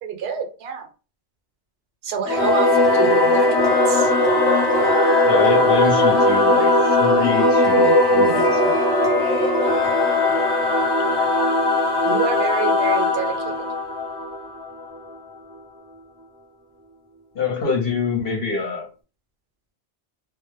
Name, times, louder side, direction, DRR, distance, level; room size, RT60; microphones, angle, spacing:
voice 1, 0.0-0.9 2.0-4.1 11.1-11.5 12.0-13.7, right 7 dB, 65° right, 6 dB, 0.8 m, -28 dB
Singing / Musical instrument, 2.2-15.1, left 2 dB, 30° left, 0.5 m, -18 dB
voice 2, 5.2-9.1 10.3-10.4 17.3-18.9, left 4 dB, 60° left, 1 dB, 0.7 m, -26 dB
2.1 x 2.0 x 3.0 m, 0.34 s
omnidirectional pair, 1.2 m